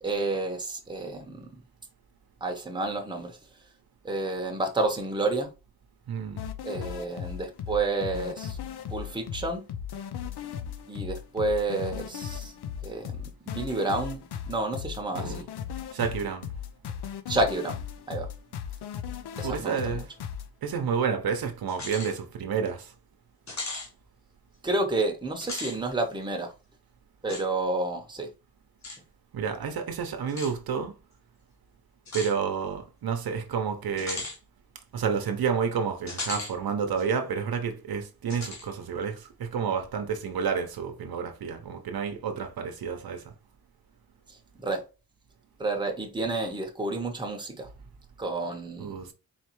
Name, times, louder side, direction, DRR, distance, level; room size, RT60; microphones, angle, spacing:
voice 1, 0.0-1.5 2.4-3.4 4.0-5.5 6.6-8.6 8.9-9.6 10.9-12.5 12.8-14.2 14.5-15.4 16.8-16.9 17.3-17.8 18.1-18.3 19.4-20.0 24.6-26.5 27.2-28.3 44.3-44.8 45.6-47.7 48.2-49.0, right 2 dB, 10° right, 0.9 m, -30 dB
voice 2, 6.1-6.4 15.1-15.5 15.9-16.5 19.4-20.1 20.6-22.9 29.3-31.0 32.1-34.3 34.9-43.3 48.8-49.1, right 6 dB, 70° right, 0.8 m, -30 dB
sound 1, 6.4-20.5, left 8 dB, 85° left, 0.6 m, -37 dB
sound 2, 21.7-22.1 22.6-22.7 23.5-23.9 25.3-25.8 27.3-27.4 28.8-29.0 30.3-30.5 32.1-32.3 34.0-34.4 36.1-36.5 37.0-37.1 38.3-38.7, left 3 dB, 45° left, 1.4 m, -36 dB
4.2 x 3.2 x 3.0 m
wide cardioid pair, 120°, 38 cm